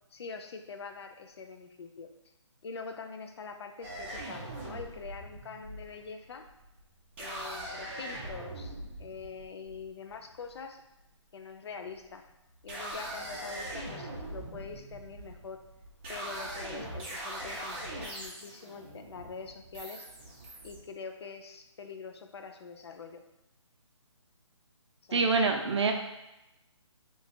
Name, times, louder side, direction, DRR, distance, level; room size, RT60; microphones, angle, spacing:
voice 1, 0.1-2.1 2.6-6.5 7.2-10.8 11.3-12.2 12.6-15.6 16.1-20.1 20.6-23.2 25.0-25.3, left 5 dB, 55° left, 5 dB, 0.5 m, -44 dB
sound 1, 3.8-10.6 11.6-12.1 12.5-20.8, right 1 dB, 20° right, 0.6 m, -42 dB
voice 2, 25.1-25.9, right 4 dB, 60° right, 3 dB, 0.6 m, -25 dB
3.0 x 2.3 x 4.1 m, 0.92 s
hypercardioid pair, 160°, 16 cm